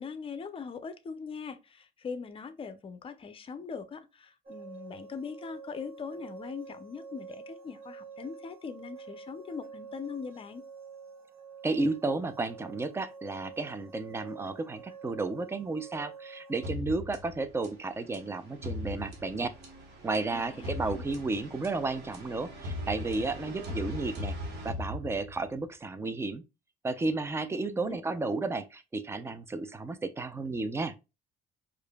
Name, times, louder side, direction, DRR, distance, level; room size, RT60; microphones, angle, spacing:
voice 1, 0.0-10.6 20.3-21.0 27.5-28.0, left 5 dB, 30° left, 0.5 m, -41 dB
sound 1, 4.5-16.7, right 5 dB, 65° right, 1.4 m, -48 dB
voice 2, 11.6-19.5 20.0-24.3 24.6-26.4 26.8-30.9, right 3 dB, 15° right, 0.4 m, -32 dB
sound 2, 16.6-25.6, left 1 dB, 80° right, 1.3 m, -40 dB
4.8 x 2.5 x 2.2 m
cardioid pair, 110°, 17 cm